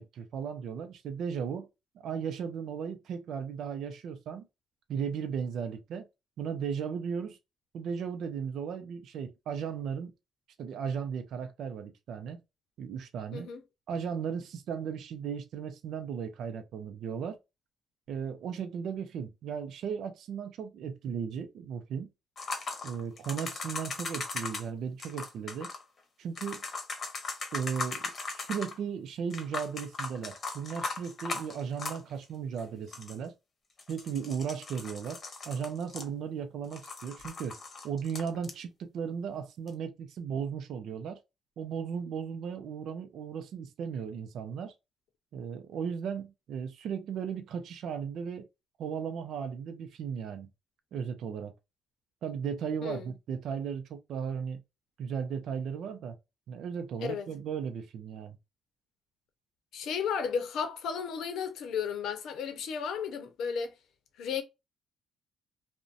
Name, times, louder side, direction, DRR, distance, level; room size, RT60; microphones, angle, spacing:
voice 1, 0.0-1.7 2.0-4.5 4.9-6.1 6.4-7.4 7.7-10.1 10.6-12.4 12.8-13.5 13.9-17.4 18.1-22.1 22.8-25.7 26.2-26.6 27.5-33.3 33.9-35.2 35.5-41.2 41.6-44.7 45.3-48.5 48.8-50.5 50.9-51.5 52.2-54.6 55.0-56.2 56.5-58.4, right 7 dB, 75° right, 0.4 m, -36 dB
voice 2, 13.3-13.6 52.8-53.1 57.0-57.3 59.7-63.7 64.2-64.4, left 6 dB, 80° left, 0.6 m, -33 dB
sound 1, 22.4-24.6 25.0-25.8 26.3-28.8 29.3-32.2 32.6-32.7 32.9-33.2 33.8-36.4 36.7-38.5 39.7-39.8, left 4 dB, 45° left, 0.8 m, -39 dB
2.5 x 2.1 x 2.4 m
cardioid pair, 90°, 0 cm